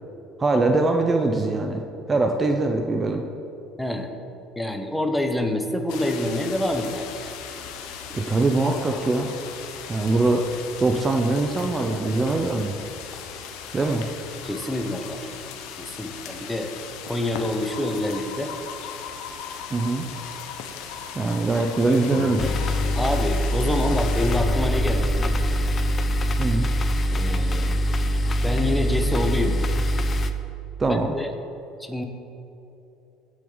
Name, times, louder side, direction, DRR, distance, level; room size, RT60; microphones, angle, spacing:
voice 1, 0.4-1.8 2.1-3.2 8.1-9.3 9.9-10.4 10.8-12.8 13.7-14.0 19.7-20.0 21.1-22.5 26.4-26.7 30.8-31.1, right 3 dB, 20° right, 3 dB, 0.7 m, -22 dB
voice 2, 3.8-4.1 4.6-7.3 14.4-15.3 15.8-16.7 17.0-18.5 23.0-25.3 27.1-27.8 28.4-29.6 30.9-31.3 31.8-32.0, left 1 dB, 5° left, 5 dB, 1.0 m, -27 dB
sound 1, 5.9-24.4, left 7 dB, 75° left, 1.1 m, -38 dB
Bowed string instrument, 21.9-27.2, left 6 dB, 60° left, 0.4 m, -36 dB
sound 2, 22.4-30.3, equal, 30° left, 0.7 m, -23 dB
17.0 x 6.3 x 4.0 m, 2.9 s
cardioid pair, 120°, 0 cm